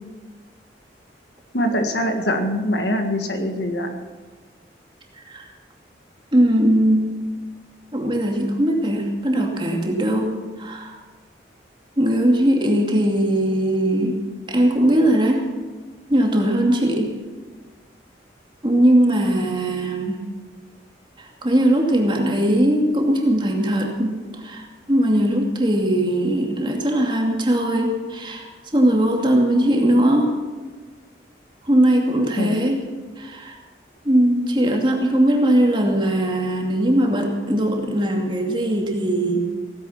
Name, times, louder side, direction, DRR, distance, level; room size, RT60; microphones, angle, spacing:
voice 1, 1.5-4.0 32.4-32.6, equal, 70° left, 5 dB, 1.8 m, -23 dB
voice 2, 6.3-7.0 7.9-11.0 12.0-14.2 14.5-15.4 16.1-17.1 18.6-20.2 21.2-28.5 28.7-30.3 31.6-32.8 33.2-33.6 34.0-39.4, right 1 dB, 25° right, 1 dB, 2.5 m, -20 dB
17.0 x 10.5 x 7.3 m, 1.4 s
head